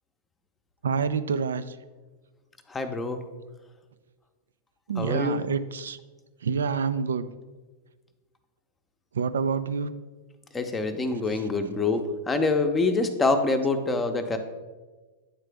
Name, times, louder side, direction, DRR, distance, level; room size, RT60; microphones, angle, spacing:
voice 1, 0.8-1.8 4.9-6.0 6.4-7.3 9.1-9.9, right 6 dB, 80° right, 13 dB, 0.3 m, -27 dB
voice 2, 2.7-3.2 5.0-5.4 10.5-14.4, left 3 dB, 15° left, 7 dB, 0.7 m, -25 dB
8.9 x 3.7 x 3.4 m, 1.3 s
hypercardioid pair, 105°, 0 cm